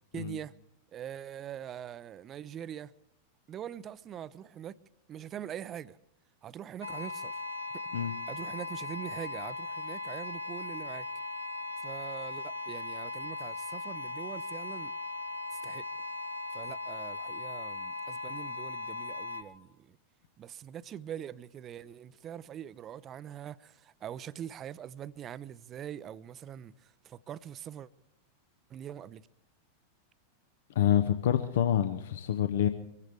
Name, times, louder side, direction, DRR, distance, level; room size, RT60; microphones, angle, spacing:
voice 1, 0.1-0.5 0.9-2.9 3.5-4.8 5.1-6.0 6.4-7.4 8.3-11.1 11.8-14.9 15.5-15.9 16.5-20.0 20.4-27.9 28.7-29.3, right 10 dB, 30° right, 0.5 m, -43 dB
sound 1, 6.8-19.4, left 3 dB, 85° right, 1.0 m, -38 dB
voice 2, 30.7-32.7, left 10 dB, 60° left, 0.7 m, -27 dB
24.5 x 15.0 x 3.5 m
figure-of-eight pair, 90°, 0 cm